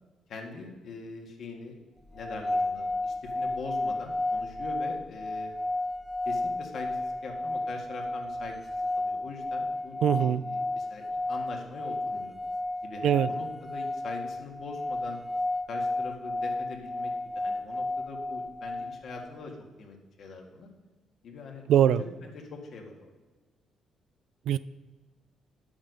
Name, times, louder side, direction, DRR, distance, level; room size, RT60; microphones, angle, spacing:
voice 1, 0.3-1.8 2.1-5.5 6.3-12.3 12.8-15.2 15.7-20.7 21.2-23.1, left 3 dB, 65° left, 2 dB, 1.9 m, -43 dB
sound 1, 2.2-19.3, left 2 dB, 20° left, 0.5 m, -32 dB
voice 2, 10.0-10.4 13.0-13.3 21.7-22.0 24.5-24.6, right 10 dB, 80° right, 16 dB, 0.3 m, -22 dB
9.7 x 7.2 x 5.3 m, 1.2 s
cardioid pair, 90°, 0 cm